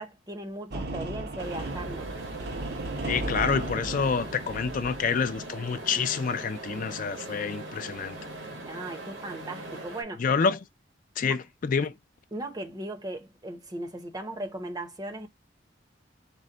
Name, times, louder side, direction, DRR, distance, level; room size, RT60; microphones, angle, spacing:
voice 1, 0.0-2.1 8.7-10.3 12.3-15.3, right 1 dB, 20° right, 0.7 m, -37 dB
sound 1, 0.7-5.6, right 2 dB, 60° right, 0.7 m, -35 dB
sound 2, 1.4-10.0, right 2 dB, 85° right, 1.5 m, -40 dB
voice 2, 3.0-8.2 10.2-10.6 11.2-11.9, left 5 dB, 45° left, 0.4 m, -28 dB
4.5 x 2.1 x 3.7 m
head